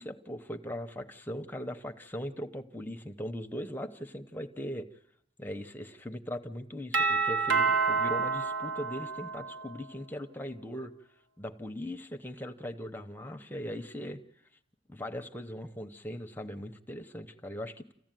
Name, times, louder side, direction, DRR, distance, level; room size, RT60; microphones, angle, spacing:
voice 1, 0.0-4.9 5.4-10.9 11.4-14.2 14.9-17.9, equal, 10° left, 5 dB, 0.9 m, -39 dB
Doorbell, 6.9-9.8, right 5 dB, 85° right, 1.4 m, -28 dB
28.0 x 15.5 x 9.2 m, 0.78 s
head